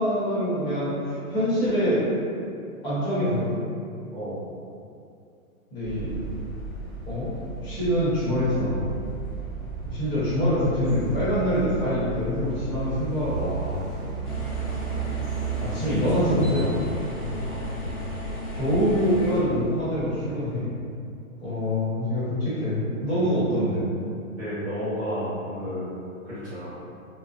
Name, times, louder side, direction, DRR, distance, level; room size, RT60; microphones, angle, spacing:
voice 1, 0.0-2.2 2.8-3.6 5.7-6.2 7.1-7.3 7.6-8.8 9.8-13.8 15.6-16.9 18.5-20.7 21.4-23.8, equal, 45° left, -10 dB, 1.2 m, -25 dB
sound 1, 5.8-20.6, right 4 dB, 5° left, 1.1 m, -34 dB
sound 2, 14.2-19.4, left 1 dB, 90° left, 0.8 m, -35 dB
voice 2, 24.4-26.0 26.2-26.7, equal, 20° right, -13 dB, 1.1 m, -31 dB
2.3 x 2.3 x 2.5 m, 2.4 s
hypercardioid pair, 145°, 42 cm